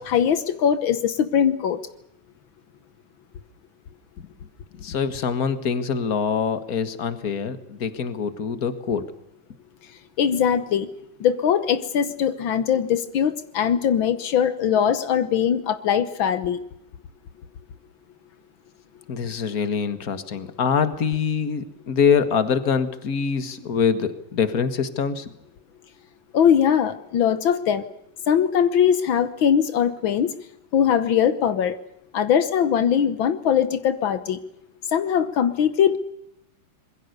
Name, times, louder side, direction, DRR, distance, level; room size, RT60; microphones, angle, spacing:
voice 1, 0.0-1.8 10.2-10.9 11.2-16.6 26.3-27.8 28.3-30.3 30.7-31.8 32.1-34.4 34.9-36.0, left 8 dB, 80° left, 12 dB, 1.9 m, -21 dB
voice 2, 4.8-9.0 19.1-25.3, left 6 dB, 50° left, 11 dB, 2.1 m, -24 dB
26.0 x 22.0 x 6.8 m, 0.79 s
omnidirectional pair, 2.1 m